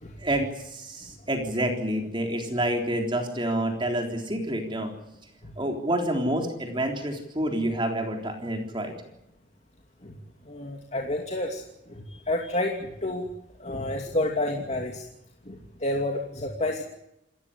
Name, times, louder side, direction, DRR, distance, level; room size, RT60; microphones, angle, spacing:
voice 1, 0.2-4.9 5.6-8.9, right 1 dB, 25° right, 3 dB, 3.7 m, -28 dB
voice 2, 10.5-11.6 11.9-13.3 13.6-15.1 15.5-16.8, left 1 dB, 35° left, 1 dB, 2.8 m, -29 dB
29.0 x 14.5 x 9.9 m, 0.82 s
head